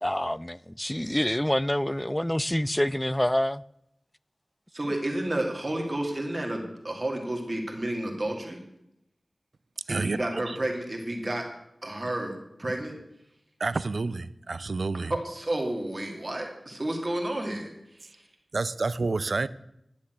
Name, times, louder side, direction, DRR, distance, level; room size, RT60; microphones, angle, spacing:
voice 1, 0.0-3.6, left 1 dB, 15° left, 0.4 m, -27 dB
voice 2, 4.7-8.6 9.9-11.5 11.8-13.0 15.1-18.2, right 1 dB, 35° right, 2.3 m, -31 dB
voice 3, 13.6-15.1 18.5-19.5, right 3 dB, 75° right, 0.5 m, -29 dB
11.5 x 7.2 x 7.8 m
wide cardioid pair, 50°, 0 cm